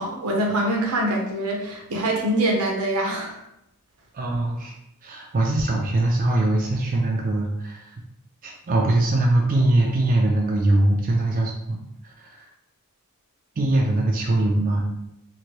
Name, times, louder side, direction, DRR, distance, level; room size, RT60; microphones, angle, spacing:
voice 1, 0.0-3.4, right 1 dB, 80° right, 0 dB, 0.7 m, -24 dB
voice 2, 4.1-4.7 5.0-7.9 8.4-12.5 13.6-14.8, right 2 dB, 40° right, -1 dB, 0.4 m, -22 dB
3.0 x 2.5 x 2.9 m, 0.83 s
head